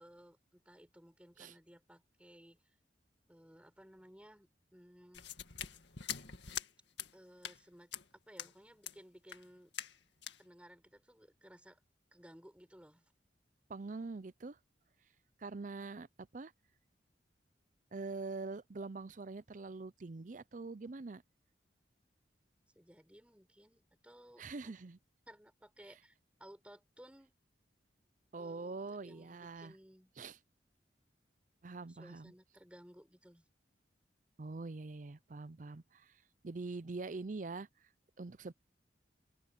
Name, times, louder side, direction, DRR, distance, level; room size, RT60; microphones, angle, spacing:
voice 1, 0.0-2.6 3.3-5.3 7.1-7.9 8.3-9.7 10.4-11.8 12.1-13.1 22.7-24.7 25.3-27.3 28.4-30.1 31.9-33.4, equal, 5° right, 4.8 m, -58 dB
sound 1, 5.1-6.7 7.0-7.1 7.4-7.6 7.9-8.0 8.4-8.5 8.8-8.9 9.3-9.4 9.7-10.0 10.2-10.4, left 9 dB, 75° left, 2.0 m, -43 dB
voice 2, 13.7-14.6 15.4-16.5 17.9-21.2 24.4-25.0 28.3-29.8 30.2-30.4 31.6-32.3 34.4-36.2 36.4-37.7 38.2-38.5, right 3 dB, 45° right, 0.5 m, -44 dB
open air
head